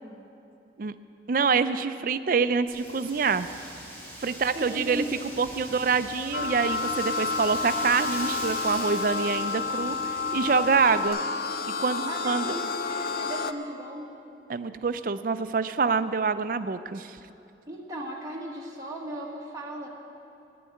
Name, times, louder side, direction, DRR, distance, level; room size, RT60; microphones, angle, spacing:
voice 1, 1.3-3.5 4.2-11.2 11.8-12.6 14.5-17.2, right 5 dB, 50° right, 12 dB, 0.4 m, -26 dB
Wind, 2.7-11.1, equal, 10° left, 3.3 m, -42 dB
voice 2, 4.5-5.7 12.1-14.1 17.7-19.9, right 1 dB, 20° right, -3 dB, 1.6 m, -37 dB
sound 1, 6.3-13.5, left 4 dB, 55° left, 0.5 m, -30 dB
11.0 x 9.4 x 9.1 m, 2.7 s
head